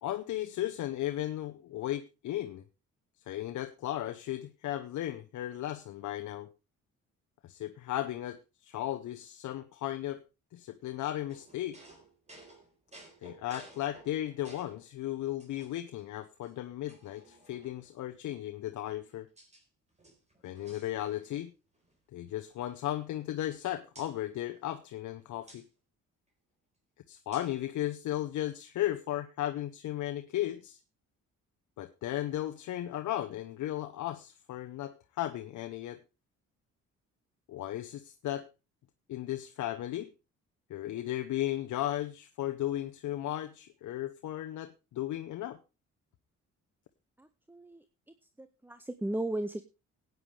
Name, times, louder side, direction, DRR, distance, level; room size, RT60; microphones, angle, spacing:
voice 1, 0.0-2.6 3.3-6.5 7.4-10.2 10.5-11.8 13.2-19.3 20.4-21.5 22.1-25.7 27.1-30.8 31.8-36.0 37.5-38.5 39.1-40.1 40.7-45.6, left 13 dB, 75° left, 7 dB, 0.8 m, -35 dB
sound 1, 11.3-14.9 15.4-16.0 16.4-16.5 16.9-17.9 18.7-19.6 19.9-21.5 21.7-22.0 22.3-23.6 23.9-24.2 25.5-25.6 27.3-27.6, right 1 dB, 25° right, 4.0 m, -56 dB
voice 2, 47.2-47.8 48.4-49.6, right 1 dB, 5° right, 12 dB, 0.6 m, -36 dB
16.0 x 9.3 x 3.3 m, 0.28 s
cardioid pair, 90°, 30 cm